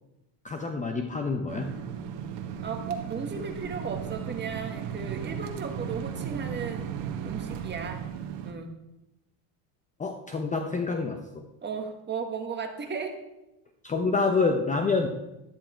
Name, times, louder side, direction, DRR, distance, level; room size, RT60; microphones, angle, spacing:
voice 1, 0.4-1.7 10.0-11.2 13.8-15.1, left 4 dB, 15° left, 5 dB, 0.8 m, -27 dB
sound 1, 1.5-8.5, right 8 dB, 55° right, 1.4 m, -36 dB
voice 2, 2.6-6.9 7.3-8.1 8.4-8.8 11.6-13.1, right 5 dB, 20° right, 4 dB, 1.6 m, -35 dB
12.0 x 9.6 x 4.5 m, 0.93 s
supercardioid pair, 130°, 48 cm